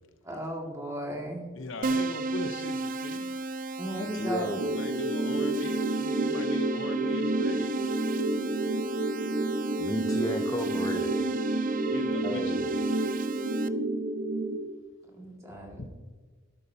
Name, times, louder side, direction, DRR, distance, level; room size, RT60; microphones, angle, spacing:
voice 1, 0.2-1.5 3.8-4.5 15.2-15.9, right 1 dB, 15° right, 2.1 m, -35 dB
voice 2, 1.6-3.4 4.6-7.9 11.0-11.4 11.7-12.6 15.8-15.9, left 2 dB, 65° left, 0.8 m, -41 dB
Keyboard (musical), 1.8-13.7, right 3 dB, 40° right, 0.4 m, -34 dB
voice 3, 4.0-4.6 9.8-11.2 12.2-12.8, left 1 dB, 15° left, 0.5 m, -34 dB
sound 1, 4.6-14.6, right 2 dB, 60° right, 1.1 m, -30 dB
12.0 x 11.5 x 2.8 m
head